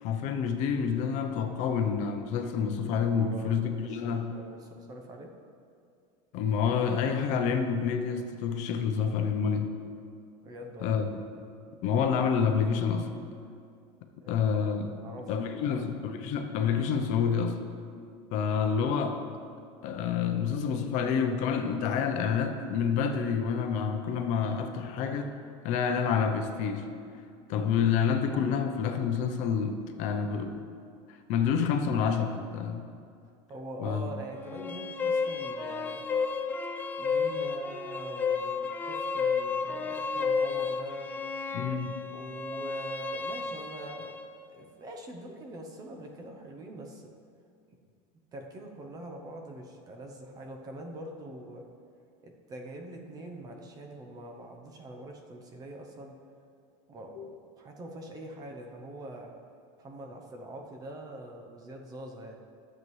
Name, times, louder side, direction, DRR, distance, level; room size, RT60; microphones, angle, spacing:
voice 1, 0.0-4.3 6.3-9.7 10.8-11.1 11.8-13.1 14.3-14.9 15.3-17.6 18.3-19.2 19.8-25.3 25.6-26.9 27.5-30.6 31.3-32.9 33.8-34.1 41.5-42.0 57.2-57.3, left 6 dB, 50° left, 5 dB, 0.7 m, -28 dB
voice 2, 3.0-5.3 10.4-11.0 14.2-15.9 33.5-36.0 37.0-41.1 42.1-44.2 44.5-47.1 47.7-47.8 48.3-51.6 52.2-56.2 56.9-59.3 59.8-62.3, right 1 dB, 25° right, 2 dB, 0.7 m, -44 dB
sound 1, 34.4-44.3, left 5 dB, 10° left, 0.3 m, -32 dB
12.0 x 7.5 x 3.2 m, 2.4 s
cardioid pair, 165°, 16 cm